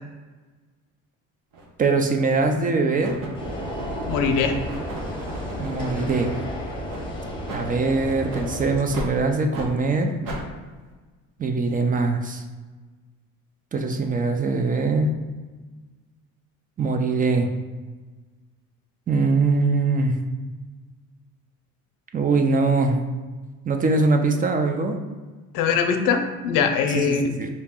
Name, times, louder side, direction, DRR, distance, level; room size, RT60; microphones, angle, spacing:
sound 1, 1.5-1.7 2.3-2.7 3.0-6.4 6.9-7.0 7.4-7.6 8.3-8.5 8.9-9.1 9.5-9.7 10.2-10.4, right 1 dB, 80° right, 1.0 m, -36 dB
voice 1, 1.8-3.2 5.6-6.3 7.5-10.1 11.4-12.4 13.7-15.2 16.8-17.5 19.1-20.1 22.1-23.0 23.7-25.0 26.9-27.5, right 3 dB, 25° right, 5 dB, 0.4 m, -22 dB
sound 2, 3.4-8.8, equal, 15° left, 0.8 m, -32 dB
voice 2, 4.1-4.6 25.5-27.2, left 6 dB, 85° left, 6 dB, 0.6 m, -22 dB
4.0 x 2.9 x 3.6 m, 1.3 s
cardioid pair, 115°, 32 cm